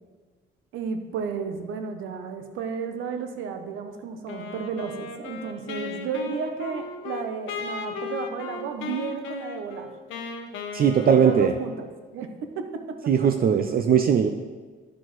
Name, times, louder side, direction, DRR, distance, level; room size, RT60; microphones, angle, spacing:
voice 1, 0.7-9.9 11.0-11.9 12.1-13.0, right 5 dB, 90° right, 6 dB, 0.8 m, -32 dB
Wind instrument woodwind instrument, 4.3-11.9, left 5 dB, 80° left, 0.8 m, -36 dB
voice 2, 10.7-11.5 13.1-14.3, right 7 dB, 50° right, 6 dB, 0.5 m, -19 dB
10.5 x 6.1 x 3.1 m, 1.4 s
cardioid pair, 90°, 20 cm